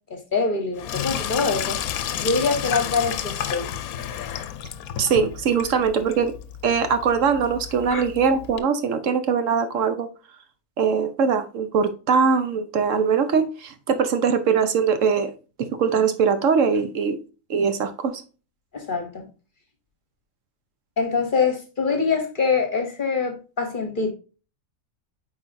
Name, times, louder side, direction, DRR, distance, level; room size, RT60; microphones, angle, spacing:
voice 1, 0.1-1.8 2.2-3.7 7.9-8.0 18.7-19.3 21.0-24.1, left 4 dB, 40° left, 1.0 m, -24 dB
Sink (filling or washing), 0.8-8.6, left 10 dB, 85° left, 1.1 m, -31 dB
voice 2, 5.0-6.3 6.6-10.1 10.8-15.3 15.6-17.2 17.5-18.2, right 6 dB, 65° right, 1.0 m, -21 dB
8.3 x 4.6 x 2.5 m
omnidirectional pair, 1.5 m